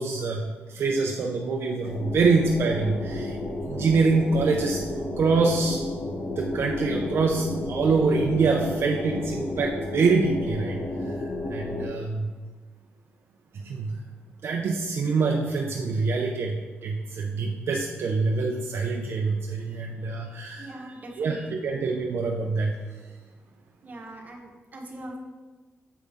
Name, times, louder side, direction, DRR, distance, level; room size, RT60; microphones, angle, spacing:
voice 1, 0.0-3.4 3.6-4.8 5.2-5.8 6.4-10.8 11.5-12.3 13.6-14.0 14.4-20.7 21.2-22.7, right 4 dB, 70° right, 0 dB, 0.6 m, -25 dB
sound 1, 1.8-11.9, left 1 dB, 55° left, 0.9 m, -32 dB
voice 2, 20.2-21.7 23.8-25.2, right 1 dB, 40° right, 0 dB, 1.2 m, -42 dB
6.8 x 5.1 x 3.5 m, 1.3 s
cardioid pair, 90°, 4 cm